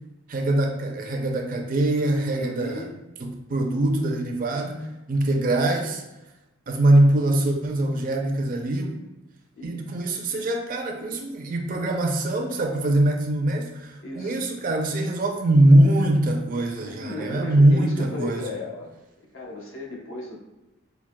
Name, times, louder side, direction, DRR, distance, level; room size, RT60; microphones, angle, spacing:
voice 1, 0.3-2.8 3.5-6.0 6.7-9.0 9.6-18.4, right 1 dB, 40° right, 3 dB, 0.4 m, -22 dB
voice 2, 2.4-3.0 9.6-9.8 14.0-14.4 16.8-18.9 19.3-20.4, left 2 dB, 75° left, -3 dB, 1.0 m, -35 dB
5.8 x 2.2 x 2.2 m, 1.0 s
head